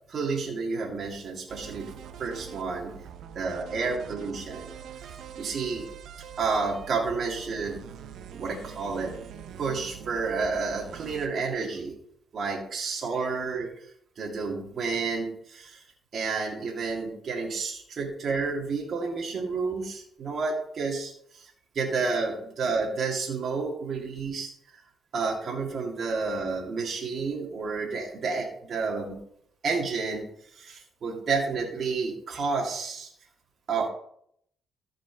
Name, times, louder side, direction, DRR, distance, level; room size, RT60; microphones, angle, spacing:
voice 1, 0.1-1.9 2.2-2.9 3.3-4.7 5.4-5.9 6.4-7.8 8.3-9.2 9.6-11.9 12.3-13.9 14.2-15.8 16.1-24.5 25.1-29.2 29.6-33.1 33.7-33.9, right 4 dB, 55° right, -2 dB, 2.2 m, -30 dB
sound 1, 1.5-11.3, right 8 dB, 75° right, 0.8 m, -44 dB
14.0 x 5.1 x 4.6 m, 0.69 s
cardioid pair, 90°, 0 cm